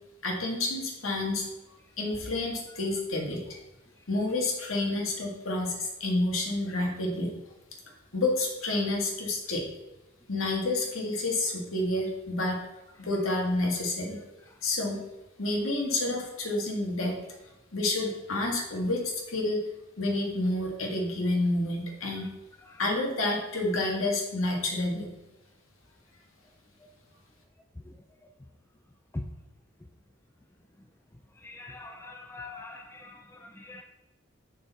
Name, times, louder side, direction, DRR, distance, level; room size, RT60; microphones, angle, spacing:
voice 1, 0.2-1.5 2.0-3.4 4.1-7.3 8.1-9.7 10.3-12.6 13.0-14.2 14.6-15.0 15.4-17.2 17.7-19.6 20.0-22.3 22.8-25.1, left 2 dB, 85° left, 0 dB, 1.8 m, -29 dB
voice 2, 31.4-33.8, left 2 dB, 10° left, 4 dB, 0.4 m, -42 dB
6.8 x 6.3 x 4.1 m, 0.99 s
head